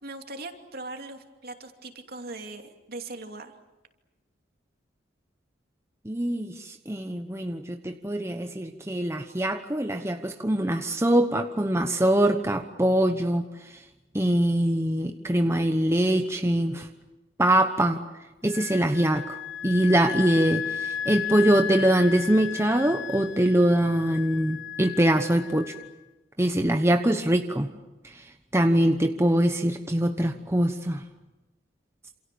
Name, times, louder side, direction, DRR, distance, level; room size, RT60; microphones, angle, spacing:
voice 1, 0.0-3.5, right 2 dB, 55° right, 5 dB, 2.8 m, -40 dB
voice 2, 6.0-13.7 14.1-16.9 17.4-18.0 18.4-19.4 19.6-25.7 26.4-27.7 28.0-31.0, right 1 dB, 15° right, 5 dB, 1.0 m, -23 dB
Wind instrument woodwind instrument, 18.5-25.9, left 9 dB, 90° left, 2.8 m, -35 dB
28.0 x 27.5 x 7.0 m, 1.1 s
head